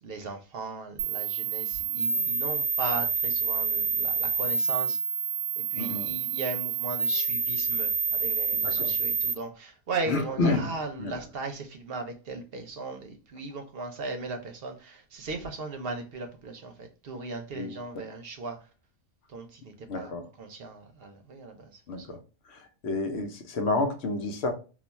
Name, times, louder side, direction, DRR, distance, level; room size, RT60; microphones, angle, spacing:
voice 1, 0.0-5.0 5.6-18.6 19.3-22.1, right 3 dB, 60° right, 0.8 m, -37 dB
sound 1, 1.0-9.3, right 6 dB, 90° right, 0.9 m, -28 dB
voice 2, 5.8-6.1 8.6-8.9 10.1-10.7 11.0-11.1 17.6-18.0 19.9-20.2 21.9-22.2 22.8-24.5, left 3 dB, 70° left, 0.9 m, -29 dB
2.4 x 2.3 x 3.9 m
omnidirectional pair, 1.2 m